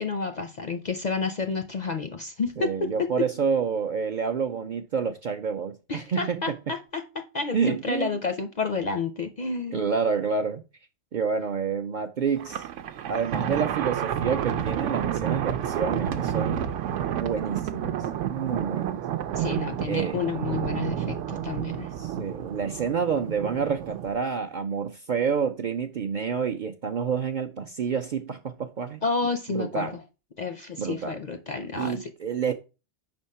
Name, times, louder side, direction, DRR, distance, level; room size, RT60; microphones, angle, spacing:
voice 1, 0.0-3.3 5.9-9.9 19.3-21.9 29.0-30.0 30.4-32.1, left 4 dB, 55° left, 0.5 m, -30 dB
voice 2, 2.6-6.4 7.5-8.2 9.7-10.6 11.1-12.6 13.1-16.6 17.1-18.0 18.3-19.1 19.8-20.2 22.0-29.0 29.5-29.9 30.8-31.2 31.8-32.5, right 6 dB, 55° right, 0.5 m, -28 dB
Thunder, 12.4-24.1, right 10 dB, 80° right, 0.9 m, -30 dB
5.4 x 3.5 x 5.4 m
omnidirectional pair, 1.2 m